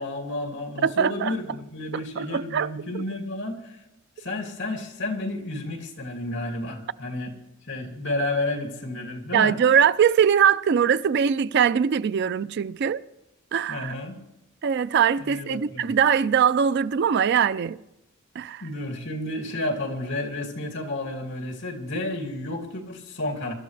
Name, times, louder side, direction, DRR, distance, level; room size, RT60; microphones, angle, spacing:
voice 1, 0.0-3.8 4.2-7.3 7.7-9.6 13.7-14.2 15.3-15.9 18.6-23.5, left 2 dB, 60° left, 2.6 m, -31 dB
voice 2, 0.8-1.3 2.2-2.7 2.9-3.0 9.3-13.0 13.5-13.9 14.6-17.8 18.4-18.6, right 7 dB, 55° right, 0.4 m, -21 dB
23.5 x 12.5 x 3.3 m
head